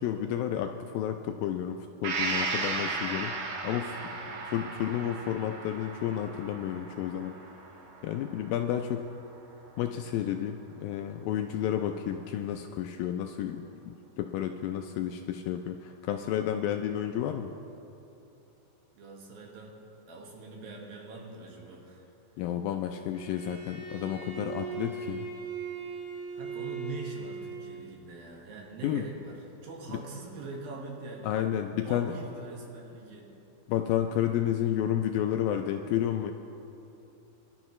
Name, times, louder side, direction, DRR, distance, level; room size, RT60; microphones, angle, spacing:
voice 1, 0.0-3.3 3.6-4.0 4.5-7.3 8.0-9.0 9.8-17.5 22.4-25.3 28.8-29.0 29.9-30.0 31.2-32.1 33.7-36.3, left 10 dB, 85° left, 5 dB, 2.1 m, -31 dB
Gong, 2.0-9.7 10.1-10.2, right 4 dB, 85° right, 3.4 m, -36 dB
voice 2, 4.0-4.4 18.9-19.8 20.1-22.1 25.9-31.3 31.7-33.3, right 3 dB, 70° right, -2 dB, 3.4 m, -43 dB
Bowed string instrument, 23.1-28.0, right 5 dB, 20° right, 3.7 m, -39 dB
24.5 x 11.5 x 3.1 m, 2.9 s
omnidirectional pair, 4.5 m